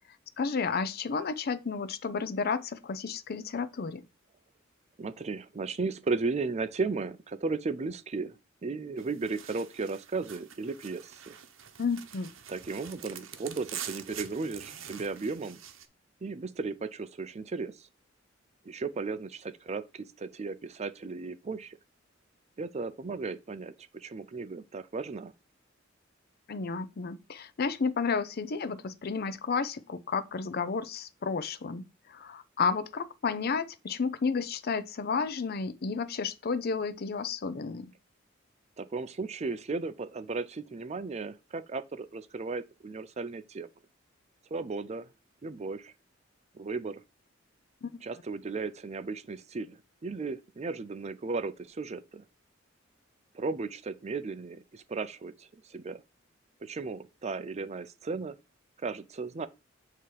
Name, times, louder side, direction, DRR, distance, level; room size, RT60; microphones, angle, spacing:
voice 1, 0.4-4.0 11.8-12.3 26.5-37.9 47.8-48.0, left 5 dB, 50° left, 0.5 m, -32 dB
voice 2, 5.0-8.3 8.6-11.3 12.5-15.6 16.2-17.8 18.6-21.8 22.6-25.3 38.8-43.7 44.5-45.1 45.4-45.9 46.5-47.0 48.0-52.2 53.3-56.0 56.6-58.4 58.8-59.5, right 4 dB, 35° right, 0.5 m, -35 dB
sound 1, 9.0-15.9, right 9 dB, 90° right, 0.8 m, -45 dB
8.4 x 3.0 x 4.7 m
head